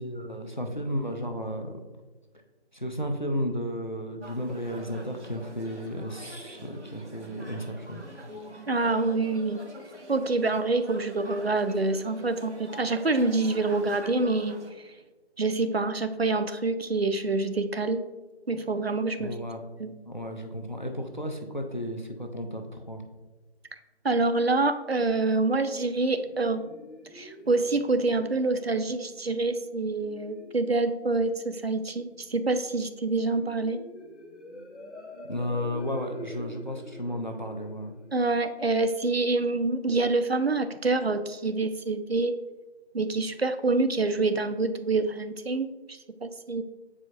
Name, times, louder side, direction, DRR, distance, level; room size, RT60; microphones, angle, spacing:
voice 1, 0.0-1.8 2.7-8.0 19.2-19.6 20.1-23.0 35.3-37.9, equal, 45° left, 4 dB, 0.6 m, -33 dB
sound 1, 4.2-14.7, equal, 85° right, 1.0 m, -45 dB
voice 2, 8.7-9.6 10.1-15.0 15.4-18.1 18.5-19.4 19.8-19.9 24.0-26.7 27.1-33.9 38.1-42.3 42.9-46.6, right 3 dB, 65° right, 10 dB, 0.5 m, -26 dB
sound 2, 25.7-39.3, left 1 dB, 85° left, 0.9 m, -47 dB
7.5 x 4.8 x 2.7 m, 1.2 s
figure-of-eight pair, 175°, 34 cm